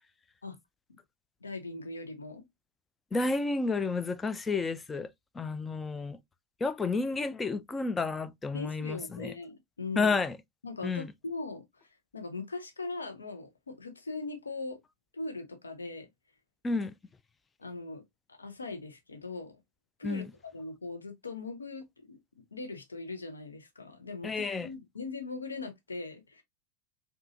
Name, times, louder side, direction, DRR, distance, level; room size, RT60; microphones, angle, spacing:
voice 1, 1.4-2.4 8.5-10.1 10.6-14.8 15.1-16.1 17.6-18.0 18.3-19.6 20.0-22.2 22.5-26.4, left 3 dB, 75° left, 1.0 m, -40 dB
voice 2, 3.1-6.2 6.6-9.3 10.0-10.4 10.8-11.1 16.6-16.9 20.0-20.3 24.2-24.7, left 3 dB, 15° left, 0.3 m, -31 dB
4.8 x 2.7 x 2.6 m
figure-of-eight pair, 90°, 0 cm